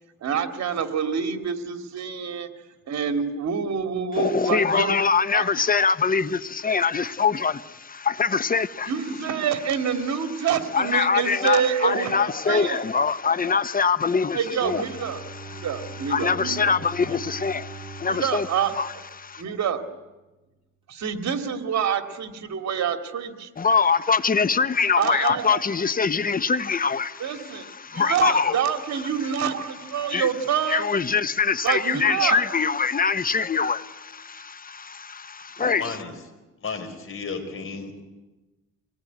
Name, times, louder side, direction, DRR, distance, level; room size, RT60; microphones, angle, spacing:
voice 1, 0.2-2.5 2.9-5.5 8.8-12.9 14.3-16.7 18.1-18.9 19.4-19.8 20.9-23.5 25.0-25.8 27.2-30.9 31.6-32.5 35.6-36.0, right 7 dB, 60° right, 2.4 m, -27 dB
voice 2, 4.2-8.9 10.7-14.8 15.3-15.7 16.1-18.5 18.8-19.4 23.6-28.6 30.0-30.3 30.7-36.0, left 5 dB, 30° left, 1.0 m, -24 dB
Bowed string instrument, 14.6-19.5, right 3 dB, 15° right, 2.4 m, -41 dB
voice 3, 35.8-36.1 36.6-38.0, left 5 dB, 45° left, 4.6 m, -33 dB
24.5 x 19.0 x 9.5 m
cardioid pair, 90°, 30 cm